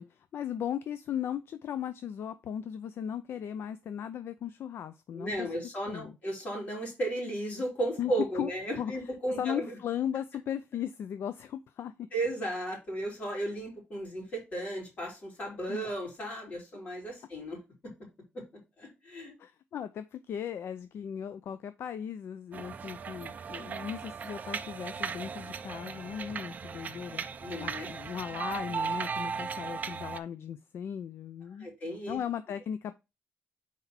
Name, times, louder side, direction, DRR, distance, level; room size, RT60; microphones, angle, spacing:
voice 1, 0.0-5.5 5.9-6.1 8.0-8.5 8.8-8.9 9.4-12.1 15.7-15.9 19.4-27.2 27.6-31.7 32.1-32.9, left 9 dB, 60° left, 0.4 m, -37 dB
voice 2, 5.1-9.7 12.1-17.6 18.8-19.3 27.4-27.9 31.6-32.2, right 1 dB, 35° left, 3.2 m, -35 dB
sound 1, 22.5-30.2, right 6 dB, 35° right, 0.5 m, -37 dB
5.9 x 4.4 x 4.2 m
wide cardioid pair, 175°, 5 cm